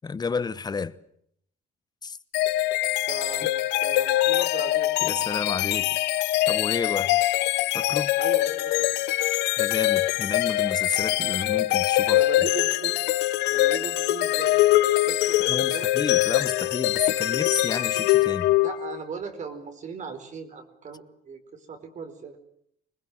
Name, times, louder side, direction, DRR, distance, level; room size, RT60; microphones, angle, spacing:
voice 1, 0.0-1.0 2.0-2.2 5.0-6.0 6.5-7.2 7.7-8.1 9.6-12.2 15.5-18.5, left 5 dB, 25° left, 1.0 m, -31 dB
sound 1, 2.3-19.0, left 16 dB, 90° left, 0.9 m, -23 dB
voice 2, 3.1-4.9 8.2-9.0 12.1-13.0 13.5-14.5 14.8-15.9 18.6-22.4, right 6 dB, 45° right, 4.6 m, -38 dB
25.5 x 21.0 x 7.8 m
cardioid pair, 110°, 17 cm